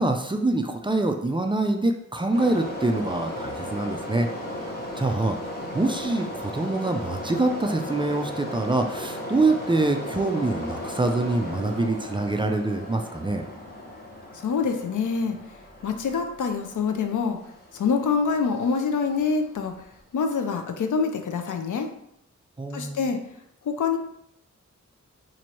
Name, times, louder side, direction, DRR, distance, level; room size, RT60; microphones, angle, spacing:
voice 1, 0.0-4.3 5.0-5.4 5.7-13.4 22.6-23.1, right 2 dB, 15° right, 4 dB, 0.3 m, -25 dB
sound 1, 2.3-20.0, left 1 dB, 30° left, 1.0 m, -36 dB
voice 2, 14.4-15.4 15.8-17.4 17.7-19.7 20.1-21.9 22.7-23.2 23.7-24.0, left 5 dB, 85° left, 6 dB, 0.5 m, -25 dB
3.0 x 2.6 x 4.3 m, 0.74 s
wide cardioid pair, 105°, 30 cm